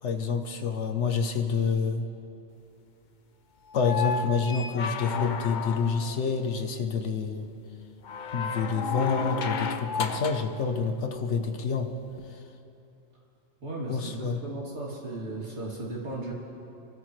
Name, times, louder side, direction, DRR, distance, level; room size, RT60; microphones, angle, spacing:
voice 1, 0.0-2.1 3.7-7.5 8.3-11.9 12.3-12.4 13.9-14.4, left 5 dB, 65° left, 6 dB, 1.2 m, -28 dB
sound 1, 3.7-6.2 8.0-10.5 12.2-12.3, left 6 dB, 50° left, 0.6 m, -32 dB
voice 2, 13.6-16.3, right 2 dB, 60° right, -5 dB, 3.1 m, -36 dB
28.5 x 12.5 x 3.2 m, 2.7 s
omnidirectional pair, 1.3 m